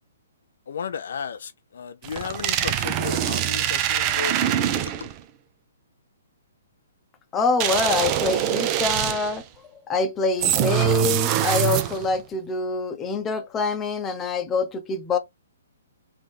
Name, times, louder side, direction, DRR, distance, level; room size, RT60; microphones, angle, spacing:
voice 1, 0.7-4.7 5.0-5.1, left 7 dB, 60° left, 0.4 m, -34 dB
sound 1, 2.0-5.2 7.6-9.4 10.4-12.2, right 11 dB, 30° right, 0.5 m, -24 dB
voice 2, 7.3-9.4 9.9-15.2, left 3 dB, 15° left, 0.8 m, -25 dB
3.8 x 3.0 x 3.4 m
figure-of-eight pair, 125°, 0 cm